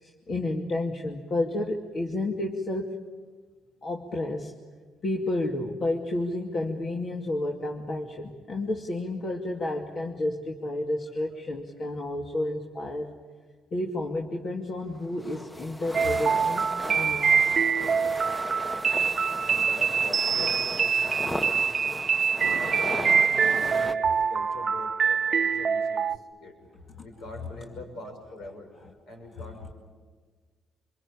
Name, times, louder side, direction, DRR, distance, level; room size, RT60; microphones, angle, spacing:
voice 1, 0.0-3.0 3.8-4.6 5.0-13.1 13.7-16.7 16.9-17.4 27.0-27.1, left 2 dB, 50° left, 1 dB, 2.5 m, -31 dB
sound 1, 14.9-23.9, equal, 10° left, 1.3 m, -36 dB
sound 2, 15.9-26.2, right 6 dB, 50° right, 0.8 m, -25 dB
voice 2, 19.5-22.1 22.6-26.6 27.0-28.7 29.1-29.7, left 2 dB, 70° left, 3 dB, 6.9 m, -43 dB
27.5 x 23.0 x 8.7 m, 1.5 s
supercardioid pair, 60°, 0 cm